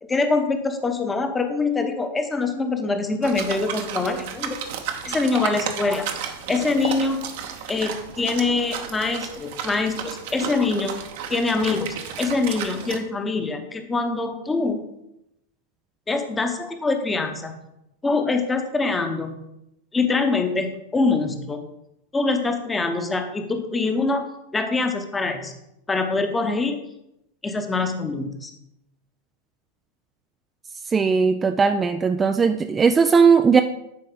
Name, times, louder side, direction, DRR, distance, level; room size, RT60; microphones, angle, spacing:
voice 1, 0.0-4.6 5.0-7.4 7.7-11.0 11.3-14.9 16.1-17.6 18.0-19.3 19.9-21.6 22.1-24.3 24.5-25.5 25.9-26.8 27.4-28.5, left 3 dB, 15° left, 6 dB, 1.0 m, -24 dB
sound 1, 3.2-13.0, right 8 dB, 50° right, 0.9 m, -33 dB
voice 2, 30.9-33.6, right 5 dB, 15° right, 7 dB, 0.4 m, -18 dB
10.5 x 4.7 x 3.9 m, 0.86 s
figure-of-eight pair, 90°, 0 cm